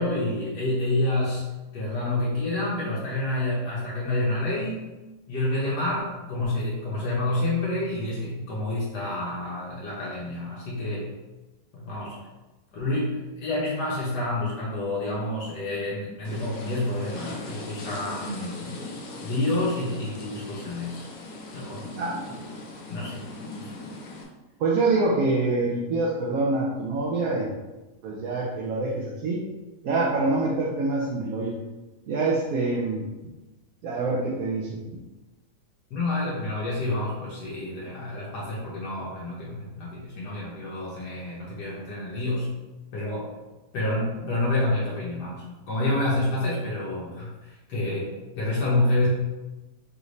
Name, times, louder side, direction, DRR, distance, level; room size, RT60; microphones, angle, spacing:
voice 1, 0.0-1.5 1.7-4.9 5.3-11.1 11.7-12.2 12.7-18.7 19.2-21.0 21.5-21.9 22.9-23.3 23.6-23.7 35.9-42.5 42.9-43.3 43.7-48.1 48.4-49.1, left 2 dB, 80° left, -6 dB, 1.4 m, -28 dB
sound 1, 16.2-24.2, left 2 dB, 60° left, 1.0 m, -40 dB
voice 2, 24.6-27.6 28.0-29.4 29.8-31.5 32.1-33.1 33.8-35.0, right 3 dB, 65° right, -3 dB, 0.9 m, -25 dB
4.9 x 2.6 x 3.2 m, 1.1 s
omnidirectional pair, 1.8 m